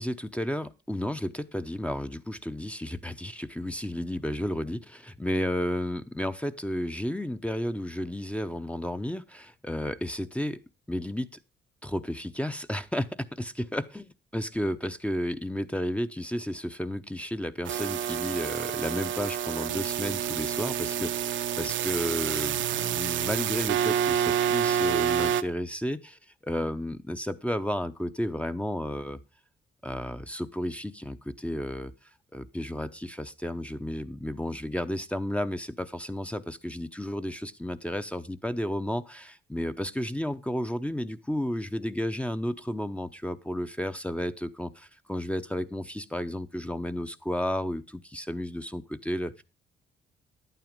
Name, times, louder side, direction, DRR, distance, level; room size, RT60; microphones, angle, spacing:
voice 1, 0.0-10.6 10.9-11.3 11.8-29.2 29.8-31.9 32.3-49.4, equal, 5° left, 10 dB, 0.7 m, -32 dB
sound 1, 17.6-25.4, right 9 dB, 70° right, 0.7 m, -28 dB
10.5 x 9.2 x 5.2 m, 0.30 s
cardioid pair, 90°, 20 cm